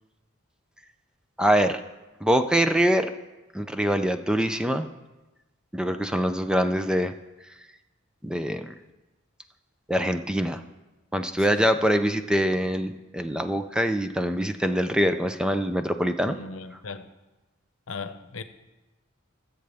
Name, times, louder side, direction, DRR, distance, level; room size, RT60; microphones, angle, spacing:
voice 1, 1.4-1.8 2.2-3.1 3.5-4.9 5.7-7.1 8.2-8.7 9.9-10.6 11.1-16.4, equal, 5° right, 0.4 m, -24 dB
voice 2, 16.3-17.1 17.9-18.4, left 4 dB, 85° left, 0.8 m, -37 dB
20.0 x 7.7 x 3.5 m
head